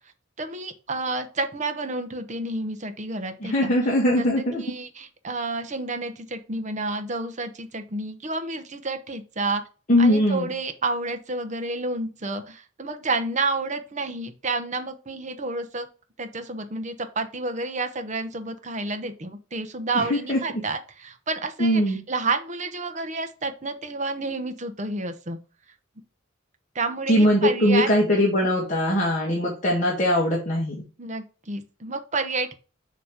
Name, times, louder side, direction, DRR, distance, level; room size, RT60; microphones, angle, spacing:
voice 1, 0.4-3.7 4.1-4.3 4.6-9.6 10.0-15.9 16.2-25.4 26.7-27.9 31.0-32.5, right 3 dB, 35° right, 7 dB, 0.9 m, -30 dB
voice 2, 3.4-4.6 9.9-10.5 19.9-20.4 21.6-22.0 27.1-30.8, equal, 40° left, -4 dB, 1.7 m, -21 dB
7.1 x 3.1 x 5.0 m, 0.35 s
head